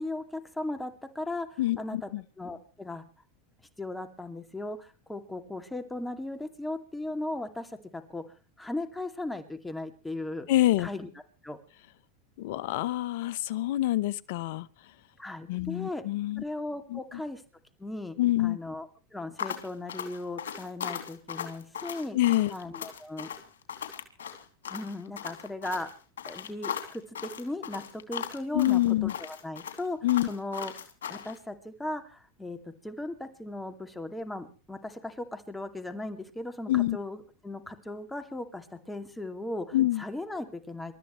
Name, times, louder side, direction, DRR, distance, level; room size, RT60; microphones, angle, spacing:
voice 1, 0.0-2.1 2.4-3.0 3.8-8.2 8.6-10.5 10.8-11.1 11.4-11.6 15.2-16.0 16.4-17.4 17.8-22.2 22.5-23.3 24.7-25.9 26.3-30.0 30.3-30.7 31.1-40.9, left 2 dB, 10° left, 8 dB, 2.4 m, -37 dB
voice 2, 1.6-2.2 10.5-10.9 12.4-14.7 15.5-16.4 16.9-17.0 18.2-18.6 22.1-22.5 28.5-29.1 30.0-30.3 36.7-37.0 39.7-40.0, left 15 dB, 65° left, 18 dB, 1.0 m, -26 dB
sound 1, 19.4-31.4, left 8 dB, 85° left, 2.8 m, -38 dB
28.0 x 13.5 x 3.2 m, 0.36 s
hypercardioid pair, 95°, 0 cm